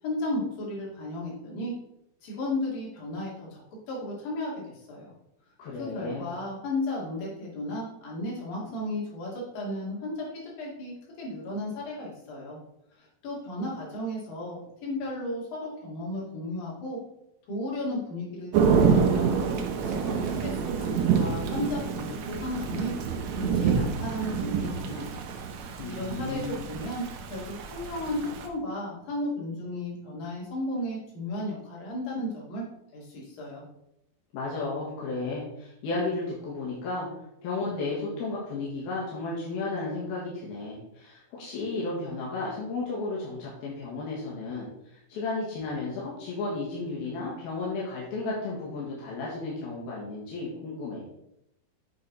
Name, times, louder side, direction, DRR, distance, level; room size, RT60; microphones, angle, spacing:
voice 1, 0.0-1.7 2.2-5.1 5.8-12.6 13.0-17.0 17.5-19.4 19.8-22.9 23.3-25.2 25.6-32.7 32.9-33.6, left 1 dB, 75° left, -5 dB, 4.4 m, -34 dB
voice 2, 5.6-6.3 25.8-26.6 34.3-37.1 37.4-51.1, left 3 dB, 90° left, -5 dB, 3.6 m, -33 dB
Thunder / Rain, 18.5-28.5, right 6 dB, 70° right, 1.8 m, -27 dB
8.7 x 6.0 x 4.1 m, 0.82 s
omnidirectional pair, 4.2 m